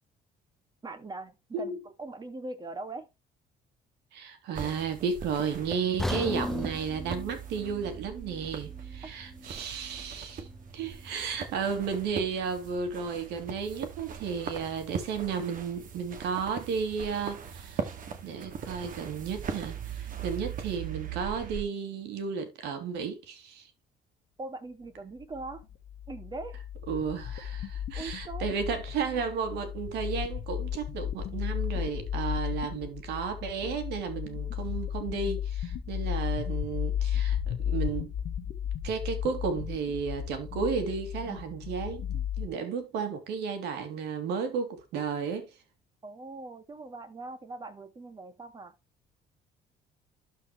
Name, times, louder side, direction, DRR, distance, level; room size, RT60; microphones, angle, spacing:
voice 1, 0.8-3.1 24.4-25.6 26.1-26.6 27.9-28.5 46.0-48.7, right 2 dB, 25° right, 2.1 m, -41 dB
voice 2, 4.1-10.5 10.7-17.9 18.2-23.7 26.9-38.1 38.8-45.5, right 6 dB, 85° right, 2.9 m, -33 dB
sound 1, 4.5-21.6, right 7 dB, 50° right, 2.2 m, -40 dB
sound 2, 6.0-10.1 10.4-10.6 11.2-11.3, left 1 dB, ahead, 0.9 m, -37 dB
sound 3, 25.3-42.5, left 9 dB, 70° left, 1.4 m, -34 dB
12.0 x 5.4 x 3.2 m
cardioid pair, 110°, 17 cm